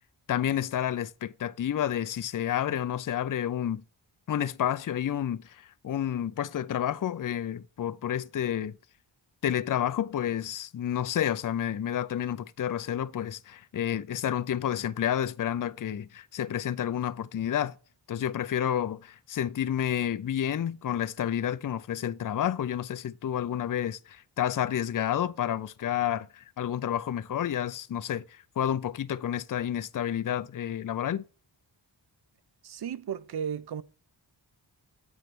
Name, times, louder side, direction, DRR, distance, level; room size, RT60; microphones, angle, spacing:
voice 1, 0.3-3.8 4.3-8.7 9.4-17.7 18.1-31.2, left 10 dB, 45° left, 0.4 m, -30 dB
voice 2, 32.6-33.8, right 8 dB, 60° right, 0.6 m, -34 dB
8.1 x 3.1 x 5.9 m
wide cardioid pair, 85°, 46 cm